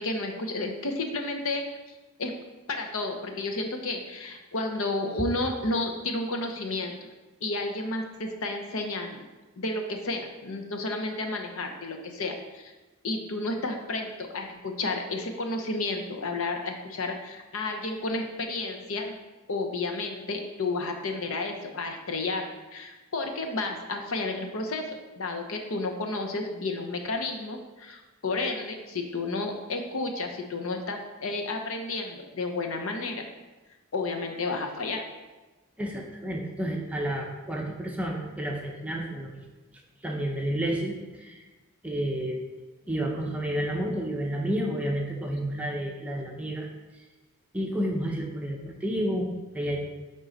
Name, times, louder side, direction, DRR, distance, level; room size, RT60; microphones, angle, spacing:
voice 1, 0.0-1.6 2.2-2.3 2.7-7.1 7.4-9.2 9.6-12.6 13.0-19.2 19.5-24.9 25.2-33.3 33.9-35.0, left 2 dB, 75° left, 4 dB, 0.8 m, -31 dB
voice 2, 35.8-39.4 40.0-41.5 41.8-42.4 42.9-46.7 47.5-49.8, right 1 dB, 5° right, -1 dB, 0.7 m, -30 dB
9.1 x 3.8 x 4.0 m, 1.2 s
head